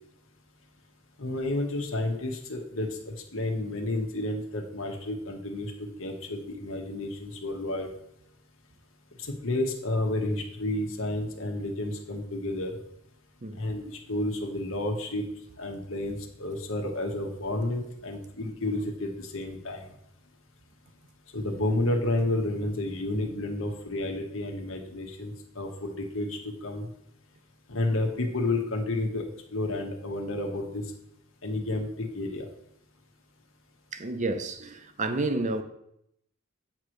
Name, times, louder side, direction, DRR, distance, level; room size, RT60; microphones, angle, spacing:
voice 1, 1.2-5.7 6.0-7.9 9.2-12.7 13.5-15.2 15.6-19.9 21.3-26.9 27.7-29.2 29.5-30.8 31.4-32.4, left 2 dB, 65° left, 1.2 m, -31 dB
voice 2, 33.9-35.6, right 2 dB, 35° right, 0.6 m, -30 dB
8.4 x 3.1 x 6.4 m
head